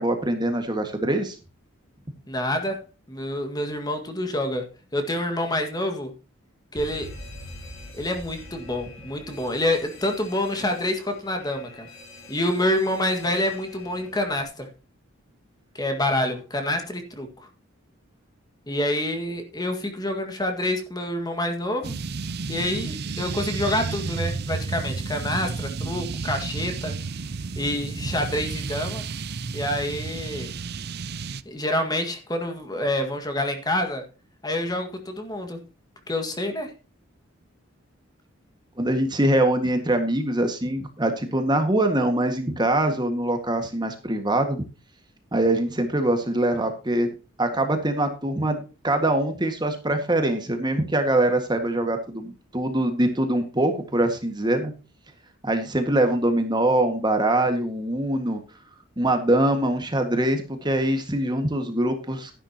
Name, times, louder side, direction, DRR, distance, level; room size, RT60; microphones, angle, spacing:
voice 1, 0.0-1.4 38.8-44.6 45.3-47.1 47.4-54.7 55.4-58.4 59.0-62.3, right 1 dB, 20° right, 6 dB, 1.7 m, -23 dB
voice 2, 2.3-4.7 4.9-6.1 6.7-7.1 7.9-11.9 12.3-14.7 15.7-17.3 18.7-22.0 22.5-26.9 27.6-29.0 29.5-30.5 31.5-34.0 34.4-35.6 36.1-36.7, left 1 dB, 20° left, 5 dB, 1.8 m, -27 dB
Alarm, 6.8-14.5, left 1 dB, 90° left, 6.3 m, -44 dB
sound 1, 21.8-31.4, right 4 dB, 50° right, 0.6 m, -31 dB
12.5 x 11.0 x 2.9 m, 0.32 s
head